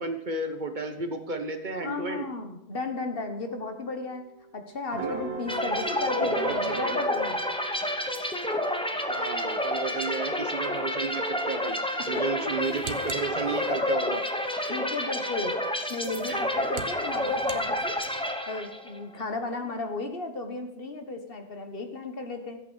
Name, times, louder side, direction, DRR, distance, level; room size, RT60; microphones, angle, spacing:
voice 1, 0.0-2.3 4.9-5.2 6.2-7.0 9.1-11.8 12.1-14.2 16.2-16.4, right 3 dB, 45° right, 7 dB, 1.3 m, -33 dB
voice 2, 1.8-4.2 4.5-7.4 12.0-12.6 14.7-15.6 15.9-18.0 18.5-22.6, left 3 dB, 55° left, 6 dB, 1.6 m, -34 dB
sound 1, 3.5-9.6, right 5 dB, 65° right, 1.8 m, -41 dB
sound 2, 5.5-19.0, left 1 dB, 5° left, 0.9 m, -29 dB
sound 3, 12.4-14.0 16.0-18.3, right 6 dB, 80° right, 1.3 m, -44 dB
14.0 x 8.5 x 6.3 m, 0.83 s
omnidirectional pair, 1.1 m